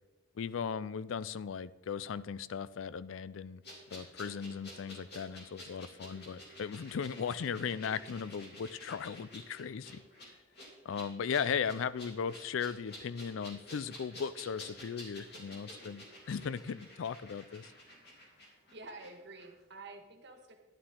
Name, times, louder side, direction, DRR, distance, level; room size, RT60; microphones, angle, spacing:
voice 1, 0.4-3.6 3.9-10.0 10.8-17.7, left 6 dB, 70° left, 16 dB, 0.4 m, -37 dB
sound 1, 3.6-19.1 19.4-19.5, left 1 dB, 50° left, 3.1 m, -51 dB
voice 2, 18.7-20.6, right 3 dB, 55° right, 5 dB, 1.5 m, -49 dB
11.5 x 11.5 x 3.7 m, 1.1 s
head